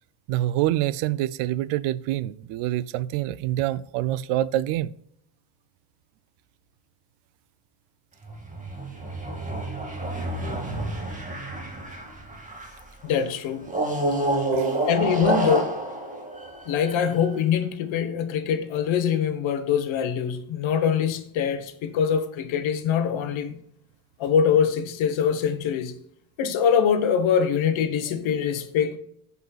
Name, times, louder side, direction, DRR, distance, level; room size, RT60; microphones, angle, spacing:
voice 1, 0.3-4.9 14.5-14.7, right 14 dB, 85° right, 0.6 m, -26 dB
sound 1, 8.2-12.9 13.7-17.3, right 2 dB, 15° right, 2.0 m, -28 dB
voice 2, 13.0-13.7 14.8-15.9 16.7-23.6 24.2-25.9 26.4-29.0, left 7 dB, 70° left, 1.3 m, -24 dB
15.5 x 5.5 x 2.3 m
cardioid pair, 100°, 49 cm